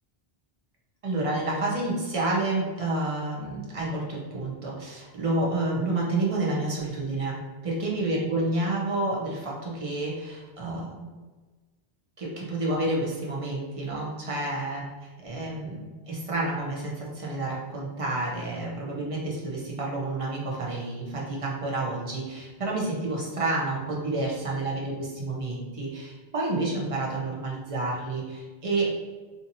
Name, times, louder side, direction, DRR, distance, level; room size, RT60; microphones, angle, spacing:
voice 1, 1.0-11.1 12.2-14.8 15.2-28.9, right 2 dB, 40° right, -3 dB, 0.6 m, -29 dB
2.8 x 2.6 x 2.6 m, 1.3 s
omnidirectional pair, 1.1 m